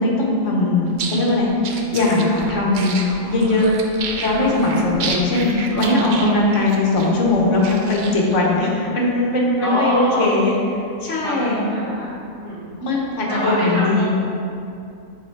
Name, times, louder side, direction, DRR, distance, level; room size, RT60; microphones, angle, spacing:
voice 1, 0.0-1.5 1.9-3.7 4.2-10.5 11.0-11.6 12.8-14.0, left 2 dB, 60° left, -3 dB, 1.2 m, -19 dB
sound 1, 0.9-8.5, right 4 dB, 80° right, 0.4 m, -31 dB
voice 2, 5.7-6.5 8.4-8.7 9.6-10.3 11.2-12.8 13.3-14.0, equal, 40° right, -9 dB, 1.1 m, -26 dB
7.3 x 4.1 x 3.2 m, 2.5 s
omnidirectional pair, 1.5 m